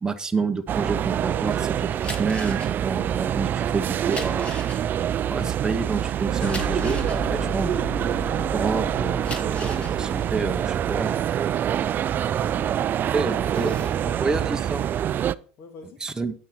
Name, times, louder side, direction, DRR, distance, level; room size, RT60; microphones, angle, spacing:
voice 1, 0.0-4.5 5.3-8.1 8.5-11.1 13.1-14.8 16.0-16.3, right 4 dB, 10° right, 6 dB, 0.8 m, -29 dB
sound 1, 0.7-15.4, right 10 dB, 35° right, 0.4 m, -26 dB
sound 2, 1.9-8.5 9.0-12.9 13.3-14.0, left 2 dB, 20° left, 2.5 m, -39 dB
voice 2, 4.1-4.6 12.1-12.8 13.2-14.5 15.6-16.0, left 4 dB, 50° left, 6 dB, 2.0 m, -43 dB
sound 3, 6.4-11.0, left 1 dB, 80° left, 4.9 m, -34 dB
8.9 x 8.4 x 4.3 m, 0.42 s
hypercardioid pair, 90°, 5 cm